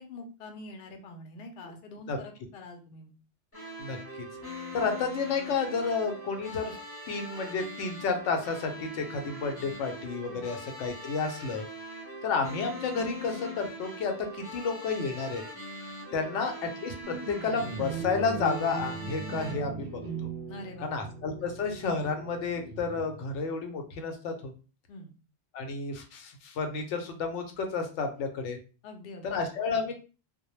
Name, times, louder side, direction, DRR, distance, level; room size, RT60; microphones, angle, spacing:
voice 1, 0.0-3.1 10.3-10.5 16.1-16.4 20.5-21.1 24.9-25.1 28.8-29.5, left 2 dB, 65° left, 3 dB, 0.7 m, -45 dB
sound 1, 3.5-19.5, equal, 15° left, 0.6 m, -42 dB
voice 2, 4.7-6.8 7.1-11.7 12.2-15.4 16.1-16.5 16.8-20.0 20.8-24.5 25.5-28.6 29.2-29.9, left 4 dB, 90° left, 4 dB, 0.9 m, -31 dB
sound 2, 17.0-23.3, right 5 dB, 55° right, 0.6 m, -39 dB
2.1 x 2.0 x 2.9 m, 0.34 s
omnidirectional pair, 1.2 m